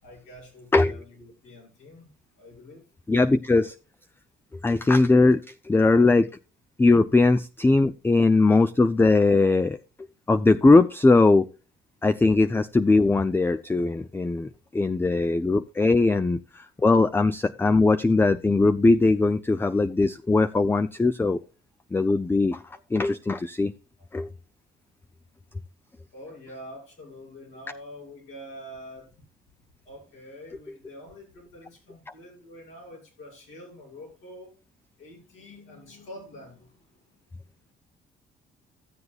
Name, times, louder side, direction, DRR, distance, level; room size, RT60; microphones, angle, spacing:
voice 1, 0.0-2.1 2.4-2.8 8.0-8.1 8.8-8.9 22.7-22.8 26.1-29.1 29.8-34.5 35.0-37.1, left 1 dB, 85° left, 6.0 m, -46 dB
voice 2, 3.1-3.7 4.6-6.3 6.8-9.8 10.3-11.5 12.0-21.4 21.9-22.6 22.9-23.7 24.1-24.3, left 3 dB, 10° left, 0.4 m, -20 dB
15.0 x 7.9 x 2.3 m
cardioid pair, 90°, 20 cm